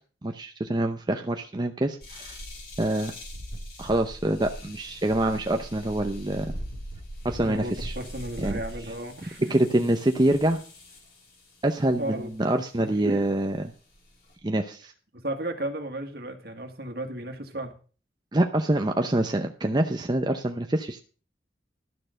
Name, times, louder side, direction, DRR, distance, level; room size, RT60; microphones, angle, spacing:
voice 1, 0.2-2.4 2.8-3.1 3.8-6.5 7.2-8.0 8.4-8.6 9.5-10.6 11.6-13.7 14.4-14.9 18.3-21.0, right 1 dB, 25° right, 5 dB, 0.7 m, -25 dB
sound 1, 2.0-11.2 11.9-12.3 13.0-13.1 13.6-14.3, equal, 55° left, 4.5 m, -40 dB
voice 2, 7.4-9.5 12.0-12.3 13.0-13.2 15.1-17.7, right 1 dB, 55° right, 6 dB, 1.9 m, -33 dB
12.0 x 6.6 x 6.4 m, 0.38 s
head